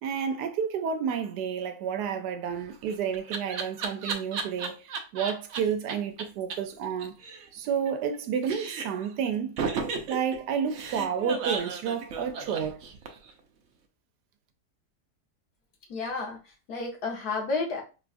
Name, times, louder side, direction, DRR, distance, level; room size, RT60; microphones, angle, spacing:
voice 1, 0.0-7.1 7.5-9.6 10.1-12.8, right 7 dB, 85° right, 1.2 m, -30 dB
Laughter, 2.5-5.6 5.9-6.0 6.2-6.3 6.5-6.6 6.8-8.2 8.4-9.1 9.6-13.3, right 5 dB, 65° right, 0.8 m, -34 dB
voice 2, 15.9-17.8, left 3 dB, 70° left, 1.6 m, -31 dB
4.4 x 2.4 x 2.5 m
omnidirectional pair, 1.7 m